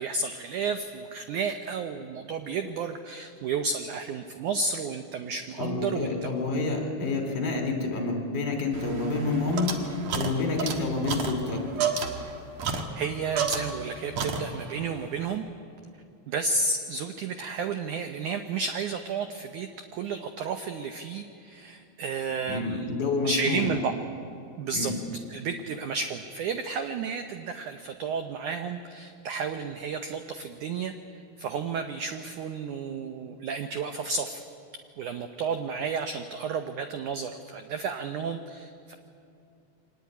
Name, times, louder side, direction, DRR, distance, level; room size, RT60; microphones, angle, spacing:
voice 1, 0.0-6.3 12.6-15.4 16.3-22.9 23.2-24.0 24.6-24.9 25.3-30.9 31.4-34.4 35.0-38.9, right 4 dB, 85° right, 7 dB, 1.7 m, -32 dB
voice 2, 5.6-11.6 22.5-23.8 24.7-25.0, left 3 dB, 30° left, 3 dB, 3.3 m, -28 dB
sound 1, 8.7-13.9 14.2-14.8, right 5 dB, 55° right, 2.3 m, -31 dB
24.0 x 19.0 x 9.4 m, 2.7 s
omnidirectional pair, 4.7 m